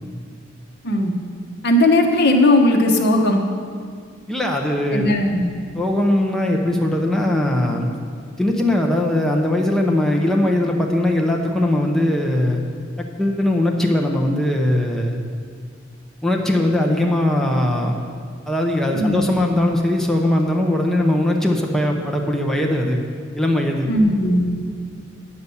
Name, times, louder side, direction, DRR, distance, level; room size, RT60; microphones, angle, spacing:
voice 1, 1.6-3.4 4.9-5.5 18.9-19.2 23.9-24.4, left 1 dB, 55° left, 2 dB, 1.1 m, -17 dB
voice 2, 4.3-5.1 5.7-7.9 8.4-12.6 13.0-15.2 16.2-17.9 18.5-23.0 23.3-23.9, left 1 dB, ahead, 0 dB, 0.7 m, -20 dB
9.5 x 6.9 x 7.0 m, 2.1 s
head